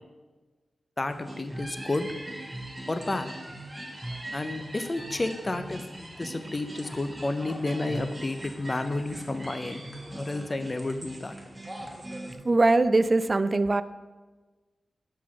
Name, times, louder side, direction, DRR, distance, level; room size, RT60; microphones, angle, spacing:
voice 1, 1.0-2.1 2.9-3.3 4.3-9.8 10.1-11.4, left 2 dB, 30° left, 9 dB, 0.6 m, -31 dB
sound 1, 1.1-12.4, right 1 dB, 15° right, 1.4 m, -40 dB
voice 2, 12.4-13.8, right 2 dB, 35° right, 13 dB, 0.4 m, -21 dB
6.1 x 4.6 x 5.9 m, 1.3 s
wide cardioid pair, 75°, 0 cm